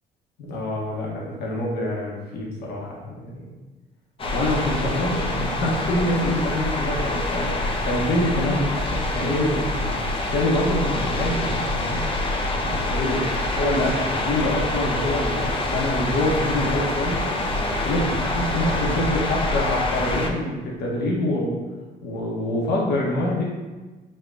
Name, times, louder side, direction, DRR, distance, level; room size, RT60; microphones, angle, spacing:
voice 1, 0.5-3.5 4.3-10.0 10.3-12.0 12.6-13.2 13.6-17.3 17.8-21.6 22.0-23.4, left 1 dB, 75° left, -3 dB, 1.0 m, -26 dB
sound 1, 4.2-20.3, left 2 dB, 30° left, 0.5 m, -26 dB
6.4 x 2.2 x 2.5 m, 1.2 s
cardioid pair, 110°, 17 cm